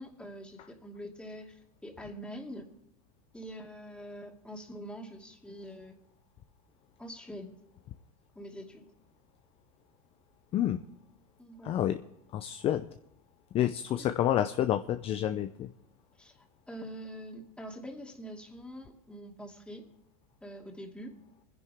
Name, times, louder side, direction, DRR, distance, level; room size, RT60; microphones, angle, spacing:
voice 1, 0.0-2.7 3.3-5.9 7.0-7.5 8.4-8.9 11.4-11.8 13.6-13.7 13.9-14.1 16.2-19.8 20.4-21.2, equal, 5° left, 1 dB, 2.5 m, -44 dB
voice 2, 11.6-12.0 12.3-12.9 13.5-15.7, left 11 dB, 30° left, 10 dB, 0.6 m, -29 dB
24.0 x 10.5 x 3.6 m, 0.85 s
supercardioid pair, 120°, 18 cm